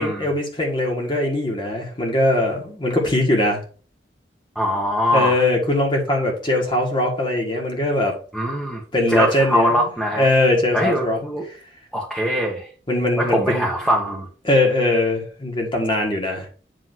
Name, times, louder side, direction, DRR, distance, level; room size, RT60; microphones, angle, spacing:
voice 1, 0.0-3.6 5.1-8.2 8.9-9.9 10.1-11.2 12.9-13.7 14.4-16.5, left 1 dB, 30° left, 0 dB, 1.7 m, -21 dB
voice 2, 4.5-5.4 8.3-8.8 9.1-10.3 10.7-11.4 11.9-12.7 13.2-14.3, equal, ahead, -3 dB, 1.3 m, -22 dB
8.0 x 3.1 x 6.1 m, 0.39 s
head